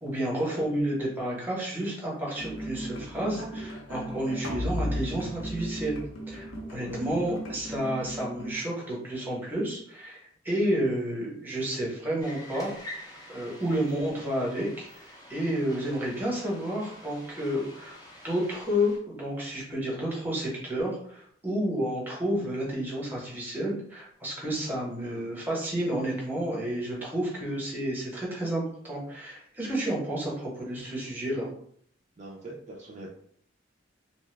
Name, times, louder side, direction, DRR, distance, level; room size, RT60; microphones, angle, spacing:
voice 1, 0.0-6.0 6.3-18.0 18.2-31.5, equal, 10° right, -4 dB, 0.9 m, -31 dB
sound 1, 2.4-8.6, equal, 80° left, 0.7 m, -36 dB
sound 2, 12.2-19.0, equal, 20° left, 0.5 m, -47 dB
voice 2, 24.7-25.3 32.2-33.1, right 2 dB, 35° right, -2 dB, 0.4 m, -44 dB
2.8 x 2.2 x 3.2 m, 0.62 s
head